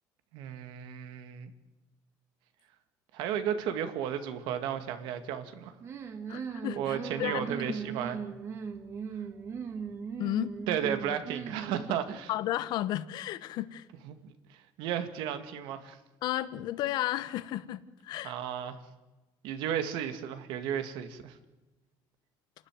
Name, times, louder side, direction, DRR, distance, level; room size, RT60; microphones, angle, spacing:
voice 1, 0.3-1.5 3.1-5.7 6.8-8.2 10.7-12.3 14.0-16.0 18.2-18.8 19.4-21.4, right 9 dB, 90° right, 9 dB, 2.2 m, -34 dB
sound 1, 5.8-12.2, right 6 dB, 35° right, 1.9 m, -38 dB
voice 2, 6.3-7.5 10.2-10.5 12.3-13.9 16.2-18.3, left 14 dB, 65° left, 14 dB, 1.0 m, -33 dB
29.5 x 13.0 x 9.3 m, 1.1 s
cardioid pair, 165°, 8 cm